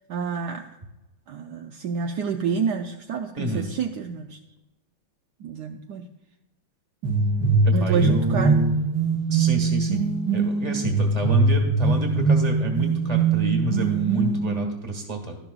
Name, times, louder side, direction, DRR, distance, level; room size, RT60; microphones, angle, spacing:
voice 1, 0.1-0.7 1.3-4.4 5.4-6.0 7.7-8.6, right 6 dB, 75° right, 5 dB, 0.9 m, -28 dB
voice 2, 3.4-3.7 7.6-8.7 9.3-10.0 10.3-15.4, right 1 dB, 20° right, 3 dB, 1.3 m, -29 dB
sound 1, 7.0-14.6, right 3 dB, 60° right, 1.4 m, -22 dB
12.0 x 12.0 x 2.4 m, 1.0 s
omnidirectional pair, 2.3 m